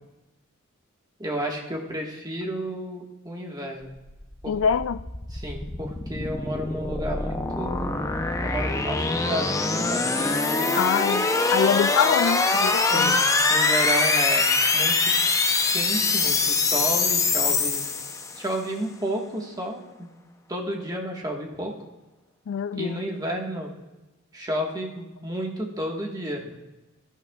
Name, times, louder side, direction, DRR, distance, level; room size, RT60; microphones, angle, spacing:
voice 1, 1.2-3.9 4.4-4.6 5.3-8.0 8.4-10.8 12.9-13.2 13.5-14.4 14.7-15.1 15.7-17.8 18.4-20.1 20.5-21.7 22.7-23.7 24.3-26.5, right 1 dB, 20° right, 1.5 m, -31 dB
sound 1, 4.1-18.5, left 3 dB, 15° left, 0.6 m, -24 dB
voice 2, 4.5-5.0 10.8-13.2 22.5-23.0, left 7 dB, 70° left, 0.3 m, -25 dB
16.5 x 11.0 x 2.3 m
head